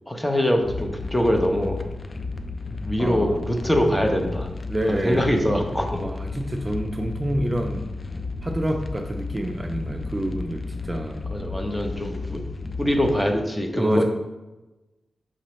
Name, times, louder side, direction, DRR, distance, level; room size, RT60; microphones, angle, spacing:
voice 1, 0.1-1.8 2.8-4.5 4.9-6.0 11.3-12.4 12.8-14.0, equal, 15° left, 3 dB, 0.8 m, -23 dB
sound 1, 0.6-13.3, left 3 dB, 50° left, 0.4 m, -33 dB
voice 2, 3.0-3.4 4.7-5.3 6.0-7.8 8.4-11.2 13.8-14.0, right 1 dB, 25° right, 2 dB, 0.5 m, -27 dB
6.1 x 2.8 x 3.1 m, 1.1 s
cardioid pair, 45°, 0 cm